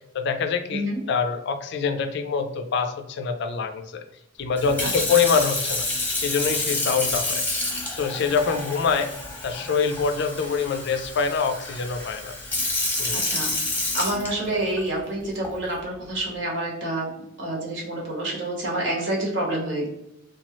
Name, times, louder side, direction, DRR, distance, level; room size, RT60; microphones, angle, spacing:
voice 1, 0.1-4.0 4.4-5.8 6.2-7.4 7.9-9.1 9.4-12.3 13.0-13.2, left 5 dB, 55° left, 7 dB, 0.4 m, -25 dB
Sink (filling or washing) / Fill (with liquid), 4.5-14.8 15.4-15.7, left 2 dB, 10° left, 0.8 m, -29 dB
voice 2, 13.1-13.5 13.9-17.1 17.4-19.9, right 1 dB, 60° right, -2 dB, 1.0 m, -28 dB
2.9 x 2.3 x 2.9 m, 0.86 s
head